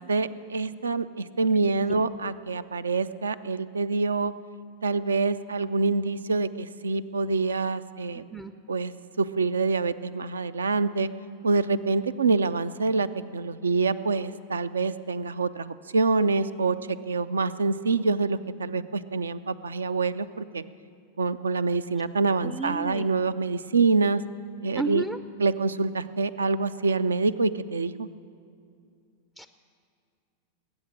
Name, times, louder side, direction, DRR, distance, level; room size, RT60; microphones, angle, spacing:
voice 1, 0.0-4.3 4.8-8.2 8.7-8.9 9.2-11.1 11.4-20.6 21.2-24.2 24.6-25.0 25.4-28.1, right 3 dB, 70° right, 15 dB, 0.4 m, -26 dB
voice 2, 22.4-23.1 24.8-25.2 29.4-29.5, right 3 dB, 10° right, 10 dB, 0.4 m, -32 dB
20.0 x 8.8 x 7.4 m, 2.4 s
figure-of-eight pair, 90°, 0 cm